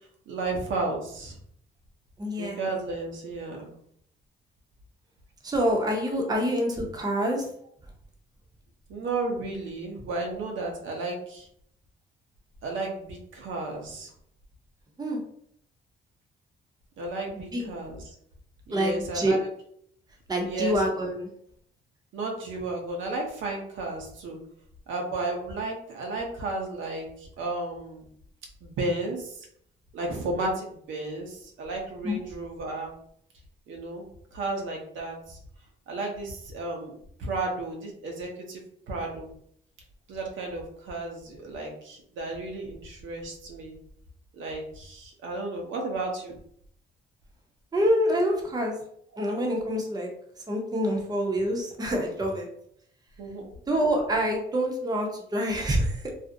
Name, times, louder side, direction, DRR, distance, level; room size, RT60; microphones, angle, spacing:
voice 1, 0.3-1.3 2.4-3.7 8.9-11.5 12.6-14.1 17.0-18.0 18.7-19.5 20.4-21.0 22.1-24.4 24.9-28.1 28.6-29.4 29.9-32.9 33.7-34.0 34.3-35.4 35.9-38.6 38.9-39.3 40.1-43.8 44.3-46.3 53.2-53.5, right 2 dB, 75° right, 0 dB, 0.7 m, -33 dB
voice 2, 2.2-2.6 5.4-7.4 15.0-15.2 17.3-17.7 18.7-19.3 20.3-21.3 32.0-32.2 47.7-48.8 49.2-50.1 50.5-52.5 53.7-56.0, equal, 20° right, 0 dB, 0.6 m, -26 dB
2.5 x 2.0 x 2.6 m, 0.67 s
cardioid pair, 90°, 20 cm